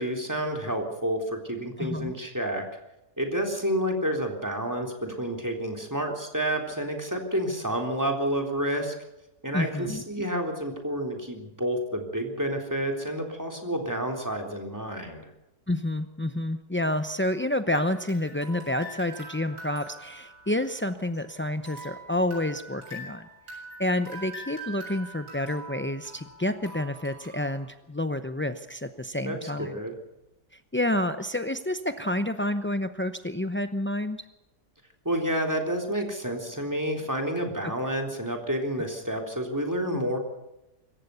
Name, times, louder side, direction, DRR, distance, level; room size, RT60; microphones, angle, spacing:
voice 1, 0.0-2.7 3.2-8.9 9.4-15.3 29.2-30.0 35.1-40.2, right 1 dB, 10° right, 3 dB, 3.7 m, -29 dB
voice 2, 1.8-2.1 9.5-10.2 15.7-23.3 23.8-29.8 30.5-34.3 37.6-37.7, left 1 dB, 20° left, 9 dB, 0.3 m, -29 dB
sound 1, 17.7-21.2 21.7-27.6, right 1 dB, 90° right, 7.9 m, -44 dB
25.5 x 15.0 x 7.0 m, 0.93 s
omnidirectional pair, 1.7 m